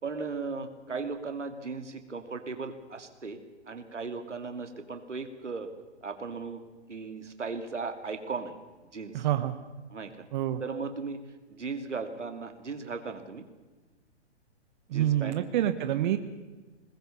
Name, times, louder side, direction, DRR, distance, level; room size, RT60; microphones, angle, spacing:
voice 1, 0.0-3.4 3.7-5.7 6.0-6.6 6.9-8.5 8.9-9.3 9.9-10.3 10.6-11.2 11.5-13.4 14.9-15.4, right 4 dB, 90° right, 7 dB, 2.8 m, -37 dB
voice 2, 9.1-9.6 10.3-10.6 14.9-16.2, right 12 dB, 40° right, 9 dB, 1.3 m, -27 dB
22.0 x 20.0 x 7.0 m, 1.2 s
hypercardioid pair, 135°, 35 cm